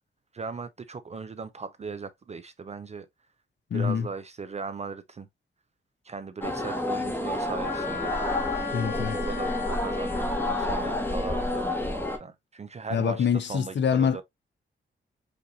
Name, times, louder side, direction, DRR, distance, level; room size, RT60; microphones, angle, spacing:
voice 1, 0.3-3.1 3.7-5.3 6.0-8.2 9.1-14.2, right 4 dB, 35° right, 0.4 m, -38 dB
voice 2, 3.7-4.1 8.7-9.2 12.9-14.2, left 7 dB, 65° left, 0.6 m, -25 dB
sound 1, 6.4-12.2, left 1 dB, 10° left, 0.9 m, -29 dB
Wind instrument woodwind instrument, 7.6-11.5, left 6 dB, 80° left, 1.6 m, -37 dB
5.1 x 2.7 x 2.6 m
wide cardioid pair, 130°, 20 cm